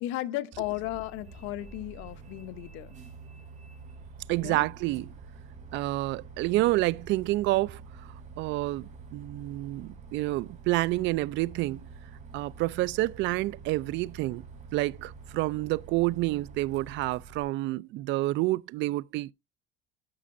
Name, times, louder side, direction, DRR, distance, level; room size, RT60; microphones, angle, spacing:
voice 1, 0.0-2.9 4.4-4.7, left 15 dB, 80° left, 0.9 m, -35 dB
Bus, 0.5-17.4, right 4 dB, 40° right, 3.5 m, -47 dB
voice 2, 4.3-5.1 5.7-8.1 8.4-11.9 12.3-14.4 14.7-19.3, right 19 dB, 70° right, 0.4 m, -29 dB
12.5 x 6.1 x 2.6 m
cardioid pair, 130°, 20 cm